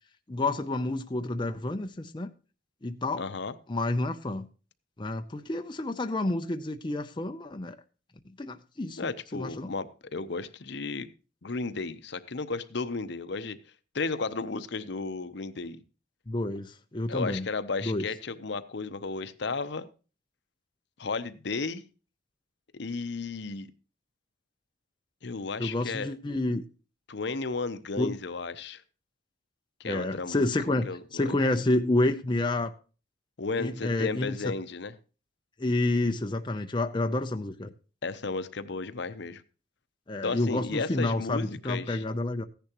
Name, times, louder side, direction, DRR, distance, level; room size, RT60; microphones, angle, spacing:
voice 1, 0.3-2.3 2.8-3.2 3.7-4.5 5.0-7.8 8.4-9.7 16.3-17.5 17.8-18.1 25.6-26.6 28.0-28.2 29.8-32.7 33.6-34.5 35.6-37.7 40.1-42.4, left 2 dB, 25° left, 0.6 m, -29 dB
voice 2, 3.2-3.5 9.0-11.1 11.4-13.6 13.9-15.8 17.1-19.9 21.0-21.8 22.7-23.7 25.2-26.1 27.1-28.8 29.8-30.5 30.9-31.3 33.4-34.9 38.0-39.4 40.2-42.0, left 4 dB, 60° left, 0.8 m, -34 dB
15.0 x 10.5 x 3.0 m
head